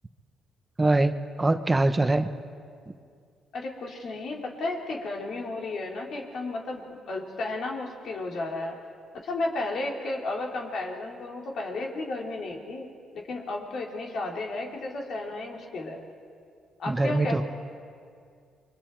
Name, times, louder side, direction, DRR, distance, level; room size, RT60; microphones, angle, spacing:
voice 1, 0.8-2.3 16.9-17.4, right 2 dB, 20° right, 9 dB, 1.0 m, -23 dB
voice 2, 3.5-8.8 9.2-16.0 16.8-17.4, left 2 dB, 65° left, 0 dB, 3.4 m, -33 dB
29.5 x 23.0 x 4.6 m, 2.3 s
cardioid pair, 80°, 0 cm